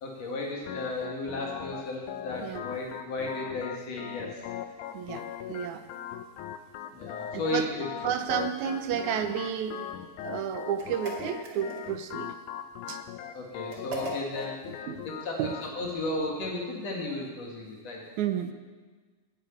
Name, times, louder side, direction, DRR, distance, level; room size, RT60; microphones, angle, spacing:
voice 1, 0.0-4.4 6.9-7.9 13.3-14.5 15.0-18.0, left 2 dB, 60° left, -1 dB, 3.2 m, -34 dB
Organ, 0.6-15.7, left 9 dB, 85° left, 2.2 m, -40 dB
voice 2, 4.9-5.9 7.3-7.7 8.0-9.8 10.2-12.4 12.9-13.0 14.8-15.0 15.4-15.6 18.2-18.5, right 9 dB, 85° right, 8 dB, 2.1 m, -31 dB
sound 1, 10.8-12.1 13.7-14.5, right 3 dB, 40° right, 2.2 m, -39 dB
9.8 x 9.0 x 8.6 m, 1.4 s
omnidirectional pair, 3.4 m